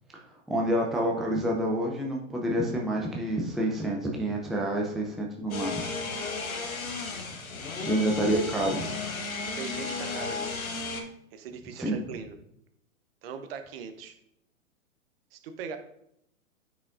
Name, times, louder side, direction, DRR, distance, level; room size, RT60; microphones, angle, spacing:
voice 1, 0.5-5.8 7.8-8.9 11.8-12.0, right 1 dB, ahead, -1 dB, 0.6 m, -28 dB
sound 1, 5.5-11.0, left 4 dB, 85° left, 1.3 m, -34 dB
voice 2, 9.4-10.6 11.3-12.4 13.2-14.2 15.3-15.8, right 6 dB, 45° right, 8 dB, 0.9 m, -40 dB
9.5 x 5.0 x 2.5 m, 0.74 s
hypercardioid pair, 115°, 41 cm